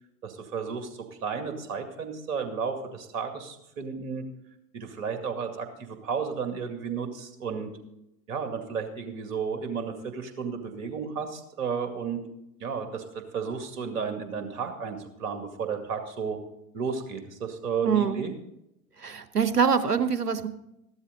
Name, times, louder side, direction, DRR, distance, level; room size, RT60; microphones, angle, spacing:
voice 1, 0.2-4.2 4.7-7.7 8.3-12.2 12.6-16.4 16.7-18.3, right 6 dB, 60° right, 6 dB, 2.3 m, -33 dB
voice 2, 17.8-18.2 19.0-20.5, right 6 dB, 85° right, 12 dB, 1.0 m, -24 dB
14.0 x 12.5 x 4.0 m, 0.83 s
figure-of-eight pair, 80°, 46 cm